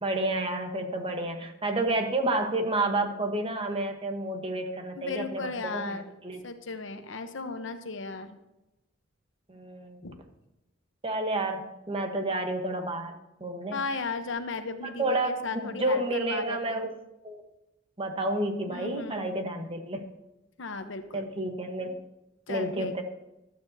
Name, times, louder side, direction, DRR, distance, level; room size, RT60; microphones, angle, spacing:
voice 1, 0.0-6.4 9.5-10.0 11.0-13.1 13.4-13.8 14.8-15.4 15.8-16.9 17.2-17.4 18.0-20.1 21.1-22.0 22.5-23.0, right 2 dB, 30° right, 5 dB, 1.2 m, -30 dB
voice 2, 4.9-6.0 6.4-8.4 10.0-10.2 13.7-16.9 18.7-19.3 20.6-21.2 21.8-21.9 22.5-22.9, left 4 dB, 65° left, 8 dB, 1.0 m, -36 dB
15.5 x 12.0 x 2.8 m, 0.92 s
head